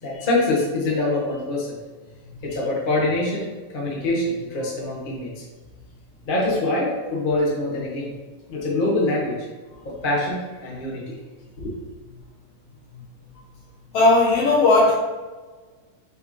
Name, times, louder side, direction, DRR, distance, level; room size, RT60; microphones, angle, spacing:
voice 1, 0.0-1.7 2.4-3.5 3.7-5.3 6.2-8.1 8.5-9.5 9.8-11.1 11.6-11.7, left 2 dB, 40° left, -4 dB, 0.7 m, -24 dB
voice 2, 13.9-15.0, left 2 dB, 65° left, -2 dB, 1.8 m, -16 dB
6.8 x 4.8 x 3.2 m, 1.3 s
omnidirectional pair, 3.5 m